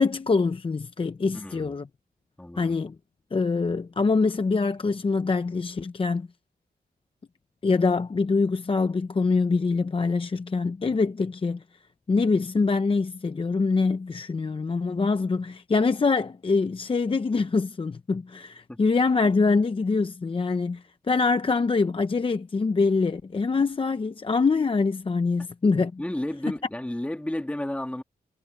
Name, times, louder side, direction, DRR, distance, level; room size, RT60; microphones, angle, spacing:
voice 1, 0.0-1.9 2.6-2.9 3.3-6.3 7.6-11.6 12.1-26.0, left 4 dB, 35° left, 0.7 m, -24 dB
voice 2, 1.3-1.7 2.4-2.8 18.7-18.8 26.0-28.0, left 1 dB, 10° left, 2.0 m, -32 dB
wide cardioid pair, 115°, 17 cm